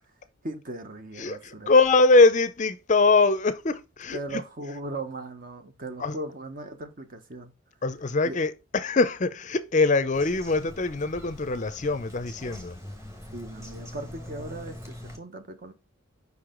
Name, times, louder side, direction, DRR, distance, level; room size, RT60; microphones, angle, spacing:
voice 1, 0.4-1.7 4.1-7.5 8.2-8.4 13.3-15.7, right 2 dB, 40° right, 1.0 m, -38 dB
voice 2, 1.2-4.4 6.0-6.2 7.8-12.8, left 3 dB, 35° left, 0.5 m, -22 dB
Bird vocalization bird call bird song, 10.1-15.2, left 1 dB, 15° right, 1.4 m, -43 dB
5.4 x 4.8 x 3.7 m
head